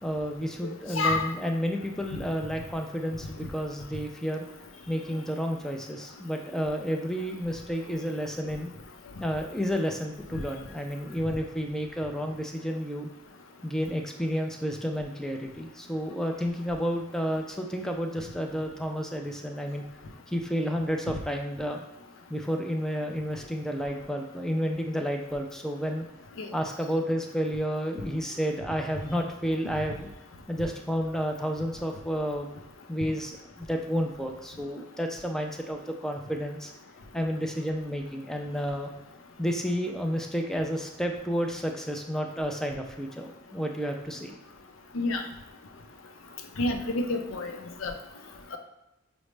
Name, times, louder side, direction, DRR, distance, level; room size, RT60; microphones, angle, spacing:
voice 1, 0.0-4.4 4.9-8.7 9.2-13.1 13.6-19.8 20.3-21.8 22.3-26.0 26.5-30.1 30.5-32.5 32.9-36.7 37.1-38.9 39.4-44.4, equal, 5° left, 2 dB, 0.4 m, -31 dB
voice 2, 0.9-1.3 26.4-26.5 44.9-45.2 46.6-47.5 47.8-47.9 48.5-48.6, left 2 dB, 85° left, 5 dB, 0.5 m, -28 dB
6.0 x 2.1 x 3.2 m, 0.91 s
head